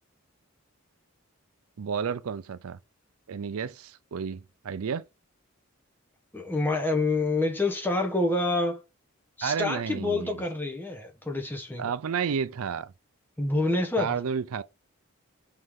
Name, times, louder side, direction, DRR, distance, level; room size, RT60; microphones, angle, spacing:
voice 1, 1.8-2.8 3.3-5.0 9.4-10.4 11.8-12.9 14.0-14.6, right 6 dB, 75° right, 0.4 m, -31 dB
voice 2, 6.3-8.8 9.4-11.9 13.4-14.2, left 2 dB, 10° left, 1.1 m, -27 dB
5.3 x 3.8 x 4.7 m
head